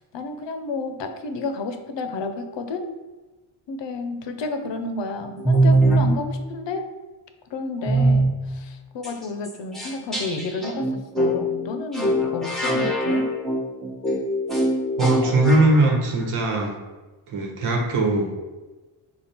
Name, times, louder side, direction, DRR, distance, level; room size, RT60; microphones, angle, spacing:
voice 1, 0.0-2.9 3.7-6.9 7.5-13.3, left 3 dB, 60° left, 7 dB, 0.7 m, -31 dB
sound 1, 5.4-6.2 7.9-8.3 9.0-9.1 9.5-9.6 9.7-15.9, right 1 dB, ahead, 1.0 m, -21 dB
voice 2, 15.0-16.7 17.3-18.3, right 2 dB, 85° right, 1 dB, 1.1 m, -20 dB
5.1 x 2.4 x 4.2 m, 1.2 s
cardioid pair, 95°, 49 cm